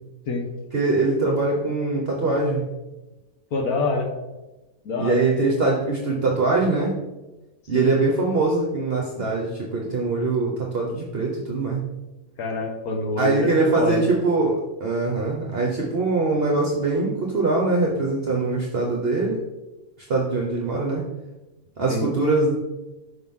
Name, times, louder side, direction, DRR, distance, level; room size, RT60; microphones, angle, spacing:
voice 1, 0.7-2.6 5.0-7.0 7.7-11.8 13.2-19.4 20.1-21.0 21.8-22.6, right 3 dB, 45° right, -1 dB, 1.0 m, -22 dB
voice 2, 3.5-4.1 4.8-5.2 7.7-7.9 12.4-13.5 13.8-14.0 21.9-22.0, left 3 dB, 85° left, 1 dB, 1.5 m, -25 dB
6.0 x 5.9 x 3.6 m, 1.1 s
omnidirectional pair, 1.5 m